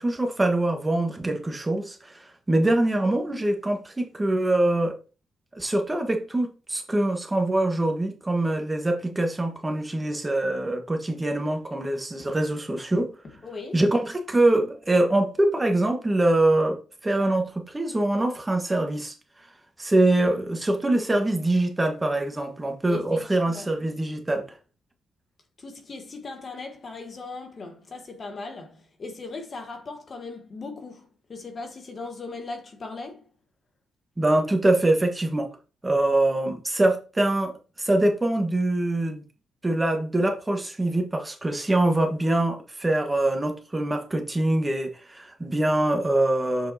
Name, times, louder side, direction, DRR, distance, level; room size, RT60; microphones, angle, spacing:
voice 1, 0.0-5.0 5.5-13.2 13.7-19.5 19.8-24.6 34.2-35.5 35.8-39.2 39.6-46.7, right 1 dB, 15° right, 1.4 m, -24 dB
voice 2, 13.4-13.8 22.9-23.2 23.5-23.7 25.6-33.2, left 3 dB, 40° left, 1.4 m, -38 dB
7.0 x 5.6 x 2.9 m
cardioid pair, 90°, 0 cm